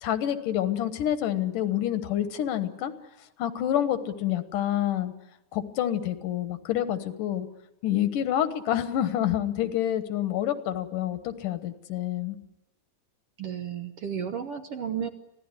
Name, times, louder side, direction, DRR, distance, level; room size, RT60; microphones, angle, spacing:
voice 1, 0.0-2.9 3.4-5.1 5.5-7.5 7.8-12.4, left 11 dB, 80° left, 10 dB, 2.8 m, -28 dB
voice 2, 13.4-15.1, right 8 dB, 65° right, 7 dB, 1.6 m, -33 dB
25.0 x 16.5 x 9.7 m, 0.96 s
omnidirectional pair, 3.6 m